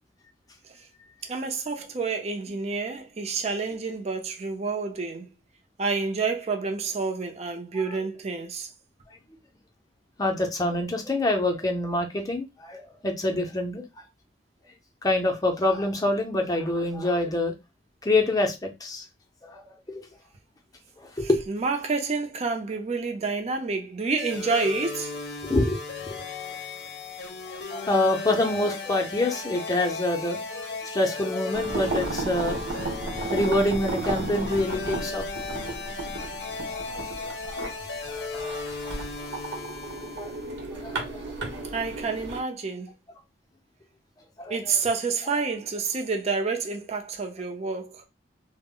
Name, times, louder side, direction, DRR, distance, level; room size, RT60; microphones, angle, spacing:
voice 1, 1.2-5.3 5.8-8.7 21.2-25.2 41.7-42.9 44.5-48.0, right 4 dB, 35° right, 0.4 m, -29 dB
voice 2, 10.2-13.8 15.0-17.5 18.0-19.0 19.4-19.6 19.9-20.0 21.0-21.4 25.5-25.8 26.1-26.2 27.7-32.6 33.3-35.3 36.7-37.8 38.1-38.5 40.2-40.3 40.8-41.2 41.5-41.6 44.4-44.6, left 1 dB, 20° left, 0.5 m, -26 dB
sound 1, 24.2-40.6, left 4 dB, 65° left, 0.6 m, -36 dB
sound 2, 31.5-42.4, right 2 dB, 75° right, 0.8 m, -34 dB
2.0 x 2.0 x 3.6 m
head